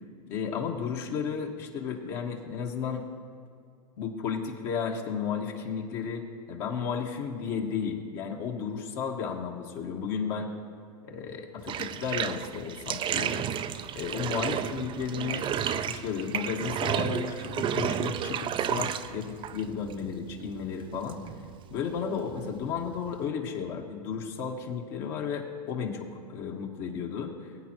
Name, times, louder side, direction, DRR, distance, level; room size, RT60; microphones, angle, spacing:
voice 1, 0.3-3.0 4.0-6.2 6.5-10.5 11.0-13.4 13.9-21.2 21.7-27.3, left 6 dB, 50° left, 1 dB, 1.5 m, -33 dB
Bathtub (filling or washing), 11.6-23.3, right 9 dB, 25° right, 0.4 m, -33 dB
20.5 x 8.6 x 3.0 m, 2.3 s
hypercardioid pair, 115°, 21 cm